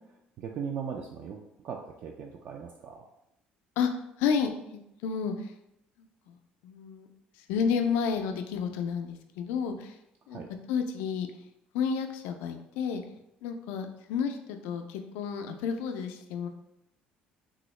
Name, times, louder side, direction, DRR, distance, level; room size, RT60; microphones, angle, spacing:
voice 1, 0.4-3.0 10.3-10.5, right 7 dB, 55° right, 1 dB, 0.3 m, -38 dB
voice 2, 4.2-5.5 6.0-6.4 6.6-7.1 7.5-10.0 10.3-10.4 10.7-11.3 11.7-13.0 13.4-16.5, left 6 dB, 85° left, 6 dB, 0.3 m, -31 dB
3.5 x 2.0 x 3.1 m, 0.82 s
supercardioid pair, 85°, 4 cm